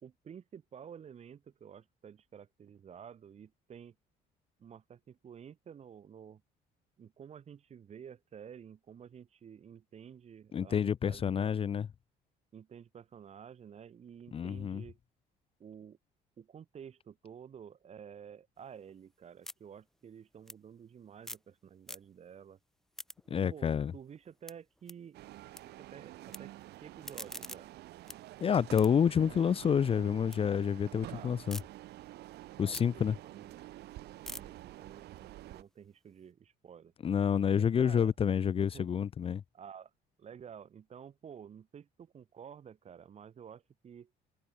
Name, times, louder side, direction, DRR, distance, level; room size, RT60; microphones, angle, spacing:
voice 1, 0.0-3.9 4.6-6.4 7.0-11.5 12.5-15.0 15.6-16.0 16.4-22.6 23.2-25.2 25.7-26.5 26.8-27.7 31.1-31.4 32.6-33.6 34.0-34.1 34.3-36.9 37.5-38.1 38.7-38.9 39.5-39.9 40.2-44.1, right 8 dB, 40° right, 1.3 m, -51 dB
voice 2, 10.5-11.9 14.3-14.8 23.3-23.9 28.4-31.6 32.6-33.2 37.0-39.4, left 7 dB, 35° left, 0.6 m, -29 dB
sound 1, 18.6-21.5 21.8-22.4 22.7-25.6 25.9-26.4 26.8-30.4 30.8-31.6 32.1-36.2, equal, ahead, 1.3 m, -50 dB
sound 2, 25.1-35.6, right 16 dB, 75° right, 1.8 m, -49 dB
cardioid pair, 110°, 17 cm